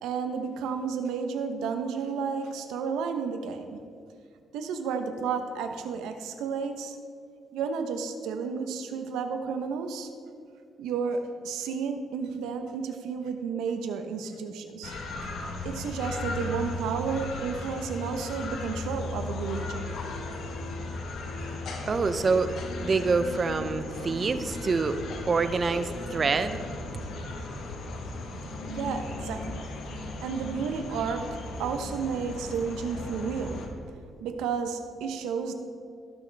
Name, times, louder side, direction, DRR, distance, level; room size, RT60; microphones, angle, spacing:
voice 1, 0.0-3.8 4.5-7.0 7.5-10.1 10.8-15.0 15.6-19.9 28.7-29.7 30.0-31.3 31.6-33.6 34.2-35.5, right 6 dB, 90° right, 7 dB, 0.9 m, -32 dB
sound 1, 14.8-33.7, left 2 dB, 75° left, 1.4 m, -36 dB
voice 2, 21.9-22.5 22.8-25.0 25.3-26.6, right 4 dB, 40° right, 10 dB, 0.7 m, -26 dB
18.5 x 6.5 x 3.4 m, 2.3 s
cardioid pair, 90°, 0 cm